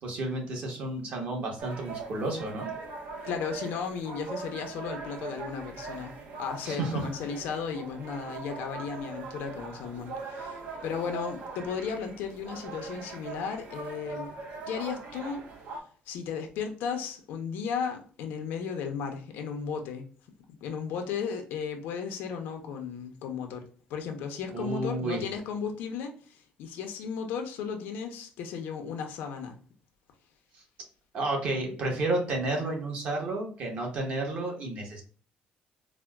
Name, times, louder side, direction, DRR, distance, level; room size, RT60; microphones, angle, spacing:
voice 1, 0.0-2.7 6.6-7.1 24.5-25.2 31.1-35.0, right 2 dB, 45° right, 1.1 m, -31 dB
sound 1, 1.6-15.8, right 4 dB, 65° right, 0.8 m, -41 dB
voice 2, 3.2-14.3 14.7-15.5 16.1-20.1 20.5-29.6, left 6 dB, 80° left, 0.6 m, -35 dB
4.1 x 2.1 x 2.2 m
cardioid pair, 170°, 3 cm